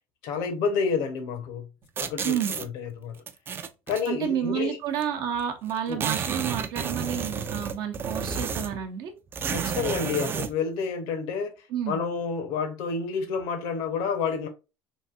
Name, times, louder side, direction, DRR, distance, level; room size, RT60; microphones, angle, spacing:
voice 1, 0.2-1.7 2.0-3.2 3.9-4.8 5.9-6.0 9.5-11.5 11.9-14.5, left 5 dB, 80° left, 0.8 m, -29 dB
sound 1, 2.0-2.7 3.3-4.1 5.0-5.1 5.4-5.5 5.7-8.8 9.3-10.5, right 6 dB, 30° right, 0.3 m, -31 dB
voice 2, 2.2-2.5 4.1-9.1 11.7-12.0, right 9 dB, 70° right, 0.7 m, -30 dB
3.1 x 2.7 x 2.4 m
cardioid pair, 125°, 7 cm